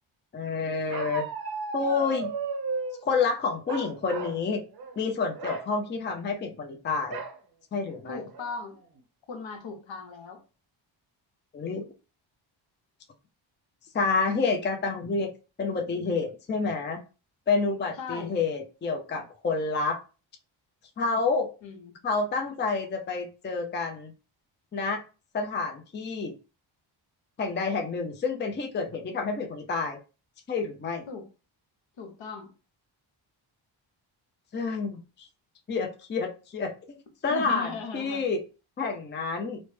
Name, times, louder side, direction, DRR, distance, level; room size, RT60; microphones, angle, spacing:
voice 1, 0.3-1.2 1.7-2.3 3.0-4.6 5.0-7.2 7.7-8.2 11.5-11.9 13.9-15.3 15.6-17.0 17.5-20.0 21.0-21.5 22.0-24.1 24.7-25.0 25.3-26.3 27.4-30.0 30.5-31.0 34.5-35.3 35.7-38.4 38.8-39.6, left 4 dB, 25° left, 3 dB, 0.5 m, -29 dB
Bark, 0.9-3.0 3.7-4.4 4.7-5.0 5.3-5.7 7.1-7.4 7.9-8.0 8.3-8.8, right 4 dB, 50° right, 0.6 m, -34 dB
voice 2, 8.0-8.8 9.3-10.4 18.0-18.3 21.6-21.9 31.1-31.3 32.0-32.5 37.3-38.2, left 4 dB, 70° left, 3 dB, 1.0 m, -38 dB
3.1 x 2.0 x 3.2 m, 0.33 s
cardioid pair, 80°, 47 cm